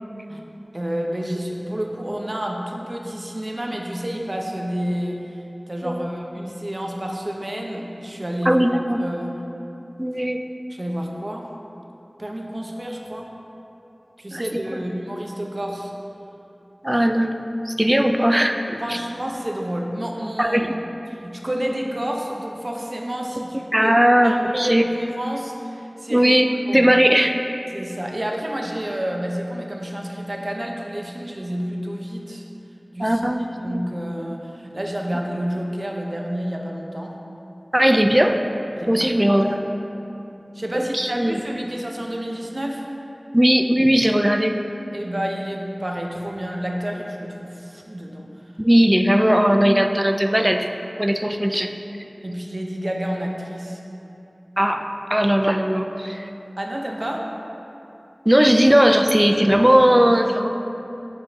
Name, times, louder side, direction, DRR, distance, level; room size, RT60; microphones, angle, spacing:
voice 1, 0.7-5.2 5.7-9.3 10.7-11.5 12.2-13.3 14.2-15.9 18.8-20.8 21.2-24.0 24.2-26.3 26.7-26.9 27.7-32.4 32.9-33.2 33.6-37.2 38.8-39.6 40.5-42.8 44.9-48.2 52.2-53.8 56.6-57.3, equal, 45° right, 0 dB, 0.8 m, -29 dB
voice 2, 8.4-9.0 10.0-10.4 14.3-14.6 16.8-19.0 20.4-20.7 23.4-23.5 23.7-24.8 26.1-26.5 26.7-27.3 33.0-33.8 37.7-38.4 38.9-39.6 40.7-41.4 43.3-44.6 48.6-50.7 51.0-51.7 54.6-54.8 55.1-56.3 58.3-60.5, equal, 15° right, 6 dB, 0.4 m, -18 dB
12.0 x 5.0 x 2.8 m, 2.9 s
wide cardioid pair, 45°, 0 cm